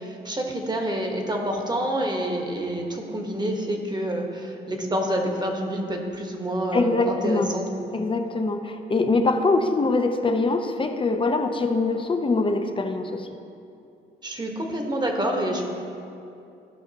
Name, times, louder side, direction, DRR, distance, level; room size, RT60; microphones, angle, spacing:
voice 1, 0.0-7.9 14.2-15.7, right 1 dB, 20° right, 2 dB, 1.3 m, -28 dB
voice 2, 6.7-7.5 7.9-13.3, left 3 dB, 25° left, 6 dB, 0.7 m, -23 dB
14.5 x 5.7 x 2.9 m, 2.6 s
cardioid pair, 90°, 20 cm